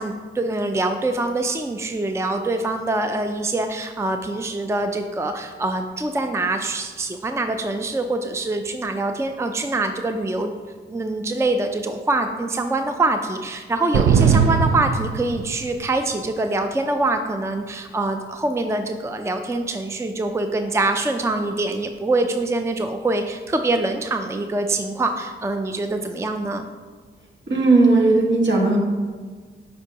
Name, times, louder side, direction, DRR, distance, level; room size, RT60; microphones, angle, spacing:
voice 1, 0.0-10.5 10.9-26.7, right 2 dB, 15° right, 6 dB, 0.5 m, -24 dB
sound 1, 13.9-15.9, right 6 dB, 75° right, 0.4 m, -19 dB
voice 2, 27.5-28.8, right 3 dB, 60° right, -2 dB, 1.7 m, -16 dB
7.9 x 5.2 x 2.9 m, 1.5 s
supercardioid pair, 45°, 21 cm